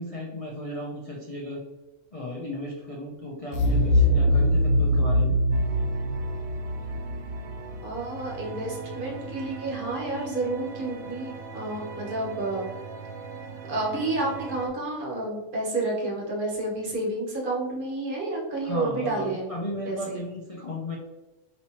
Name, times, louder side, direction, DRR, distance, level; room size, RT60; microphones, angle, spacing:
voice 1, 0.0-1.6 2.1-5.3 18.6-21.0, left 1 dB, 50° left, -3 dB, 0.4 m, -35 dB
sound 1, 3.5-8.4, left 1 dB, 70° left, 0.9 m, -23 dB
sound 2, 5.5-14.7, right 4 dB, 75° right, 1.0 m, -40 dB
voice 2, 7.8-12.7 13.7-19.5 19.9-20.2, right 2 dB, 40° right, -2 dB, 1.2 m, -30 dB
5.3 x 3.0 x 2.8 m, 1.1 s
omnidirectional pair, 1.6 m